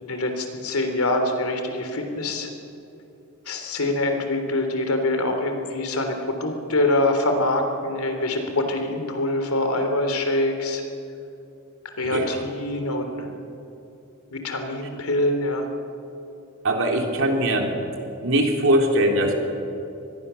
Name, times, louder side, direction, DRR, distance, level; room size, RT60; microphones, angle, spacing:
voice 1, 0.0-2.5 3.5-10.8 12.0-13.3 14.3-15.7, left 1 dB, 80° left, 5 dB, 3.4 m, -24 dB
voice 2, 12.1-12.4 16.6-17.7 18.2-19.3, right 1 dB, 65° right, 2 dB, 3.4 m, -21 dB
25.5 x 21.0 x 7.1 m, 2.8 s
head